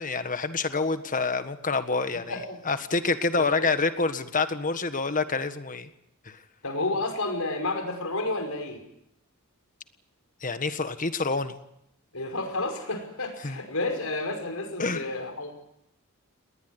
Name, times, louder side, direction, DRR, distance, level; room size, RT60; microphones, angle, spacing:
voice 1, 0.0-2.4 2.6-5.9 6.2-6.4 10.4-11.6 13.4-13.6 14.8-15.1, left 4 dB, 40° left, 10 dB, 1.6 m, -27 dB
voice 2, 3.4-3.7 6.6-8.8 12.1-15.5, left 2 dB, 75° left, 5 dB, 5.4 m, -31 dB
20.0 x 19.5 x 9.7 m, 0.77 s
head